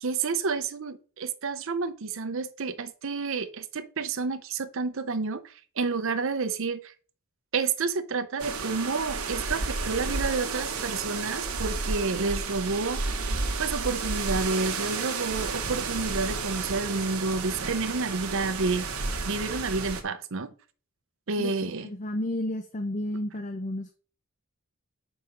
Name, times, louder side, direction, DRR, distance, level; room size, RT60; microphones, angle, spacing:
voice 1, 0.0-5.4 5.8-6.9 7.5-13.2 13.6-18.9 19.3-20.5 21.3-21.9, right 4 dB, 65° right, 0.7 m, -30 dB
sound 1, 8.4-20.0, right 4 dB, 90° right, 1.2 m, -32 dB
voice 2, 21.4-23.9, left 1 dB, 35° left, 0.6 m, -32 dB
5.5 x 5.0 x 5.7 m
head